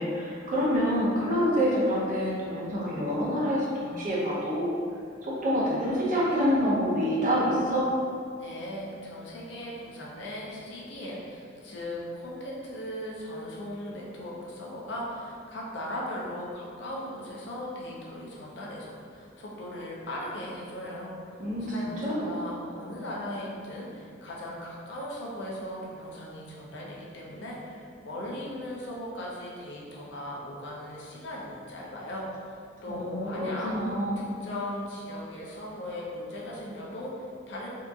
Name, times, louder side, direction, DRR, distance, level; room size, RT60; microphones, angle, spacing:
voice 1, 0.0-4.7 5.2-7.9 21.4-22.3 32.9-34.3, equal, 45° right, -6 dB, 0.6 m, -27 dB
voice 2, 8.4-32.3 32.8-33.7 34.2-37.7, left 1 dB, 65° left, -4 dB, 0.5 m, -38 dB
2.7 x 2.4 x 2.2 m, 2.3 s
head